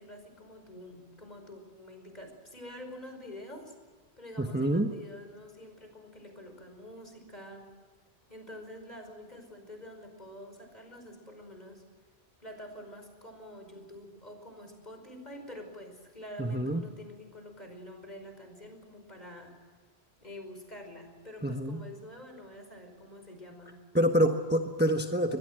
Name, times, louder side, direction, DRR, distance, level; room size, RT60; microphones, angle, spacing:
voice 1, 0.0-3.7 4.2-7.7 8.3-11.8 12.4-19.5 20.2-23.8, left 1 dB, 40° left, 5 dB, 5.4 m, -47 dB
voice 2, 4.4-4.9 16.4-16.9 21.4-21.8 23.9-25.4, equal, 10° right, 4 dB, 1.2 m, -27 dB
23.5 x 21.5 x 7.8 m, 1.5 s
omnidirectional pair, 1.1 m